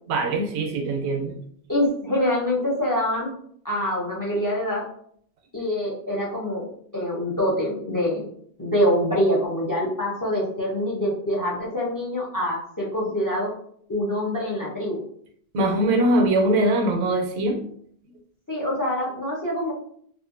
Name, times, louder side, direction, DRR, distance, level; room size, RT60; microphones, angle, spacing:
voice 1, 0.1-1.4 15.5-17.6, right 1 dB, 85° right, 4 dB, 0.8 m, -22 dB
voice 2, 1.7-3.3 3.6-4.8 5.5-8.2 8.6-13.5 13.9-15.0 18.5-19.7, equal, 25° left, -4 dB, 0.5 m, -25 dB
2.5 x 2.4 x 2.4 m, 0.63 s
omnidirectional pair, 1.1 m